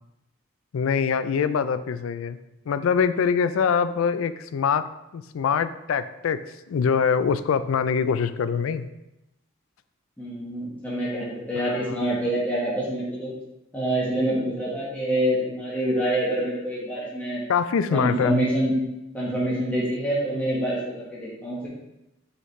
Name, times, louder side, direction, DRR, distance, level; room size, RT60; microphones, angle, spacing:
voice 1, 0.7-2.4 2.7-4.9 5.1-6.4 6.7-8.9 11.7-11.8 17.5-18.5, left 6 dB, 85° left, 13 dB, 0.4 m, -24 dB
voice 2, 10.2-13.3 13.7-17.4 17.9-18.7 19.1-20.8 21.1-21.7, right 1 dB, 10° left, -8 dB, 1.4 m, -26 dB
5.7 x 5.6 x 3.2 m, 0.92 s
head